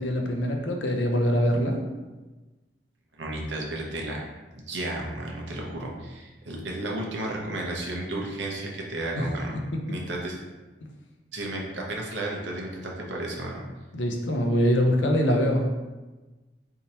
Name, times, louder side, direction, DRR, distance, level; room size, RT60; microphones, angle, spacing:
voice 1, 0.0-1.8 9.2-9.3 9.7-9.8 13.9-15.7, equal, 90° left, 2 dB, 0.7 m, -23 dB
voice 2, 3.1-4.3 4.5-9.5 9.9-10.4 11.3-13.6, right 1 dB, 80° right, -1 dB, 0.8 m, -33 dB
3.6 x 2.8 x 4.3 m, 1.2 s
head